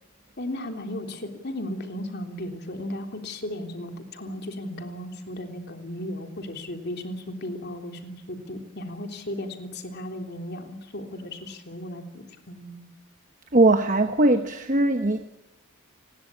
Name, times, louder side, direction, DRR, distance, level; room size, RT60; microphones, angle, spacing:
voice 1, 0.4-12.9, left 1 dB, 50° left, 4 dB, 3.4 m, -35 dB
voice 2, 13.5-15.3, right 2 dB, 35° right, 8 dB, 1.1 m, -20 dB
29.5 x 20.5 x 8.6 m, 0.92 s
head